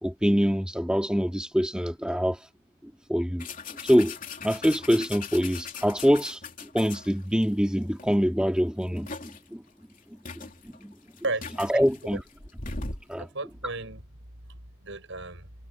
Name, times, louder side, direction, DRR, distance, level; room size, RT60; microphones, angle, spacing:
voice 1, 0.0-2.4 3.1-3.5 3.8-4.2 4.4-6.4 6.7-9.6 10.1-10.9 11.6-12.2 13.1-13.3, equal, 5° right, 2.0 m, -25 dB
sound 1, 3.4-7.4 8.0-8.2 8.5-9.5 10.0-10.1 10.2-13.1, left 4 dB, 40° left, 3.2 m, -39 dB
voice 2, 11.2-11.8 12.1-12.2 13.1-14.0 14.5-15.5, right 2 dB, 60° right, 7.3 m, -35 dB
head